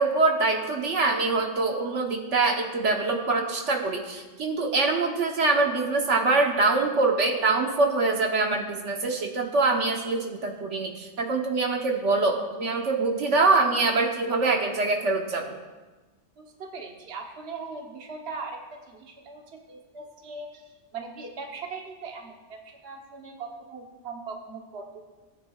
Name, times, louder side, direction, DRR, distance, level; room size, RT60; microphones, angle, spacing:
voice 1, 0.0-15.4, right 3 dB, 80° right, 2 dB, 1.4 m, -24 dB
voice 2, 16.4-20.6 20.9-25.0, right 4 dB, 60° right, 1 dB, 1.3 m, -40 dB
17.0 x 9.2 x 2.4 m, 1.2 s
omnidirectional pair, 1.2 m